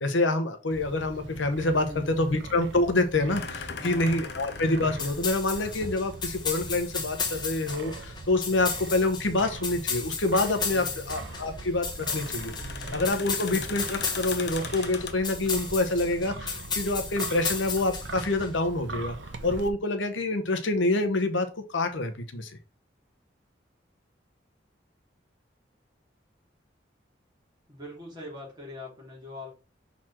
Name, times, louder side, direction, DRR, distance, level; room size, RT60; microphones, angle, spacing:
voice 1, 0.0-12.5 12.9-19.2 19.4-22.5, left 2 dB, 80° left, 8 dB, 1.0 m, -27 dB
Wind, 0.7-19.7, right 2 dB, 80° right, 0.9 m, -42 dB
voice 2, 1.8-2.5 3.8-4.5 10.5-11.1 12.6-13.4 27.7-29.5, left 1 dB, 20° right, -5 dB, 3.5 m, -43 dB
sound 1, 2.0-15.1, left 5 dB, 55° left, 0.7 m, -41 dB
sound 2, 5.0-18.5, left 5 dB, 25° left, 0.9 m, -34 dB
6.2 x 4.2 x 4.4 m, 0.32 s
head